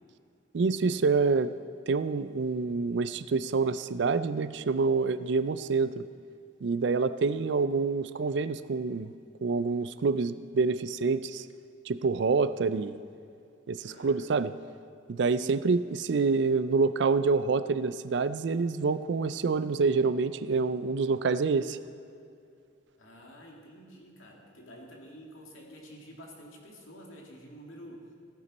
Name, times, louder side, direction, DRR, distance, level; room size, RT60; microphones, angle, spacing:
voice 1, 0.5-1.5 1.9-6.1 6.6-9.1 9.4-11.5 11.9-13.0 13.7-14.5 15.1-21.8, right 4 dB, 60° right, 14 dB, 0.4 m, -27 dB
voice 2, 13.8-14.3 15.3-15.7 23.0-28.1, equal, 90° left, -1 dB, 2.2 m, -49 dB
16.0 x 9.6 x 4.2 m, 2.5 s
head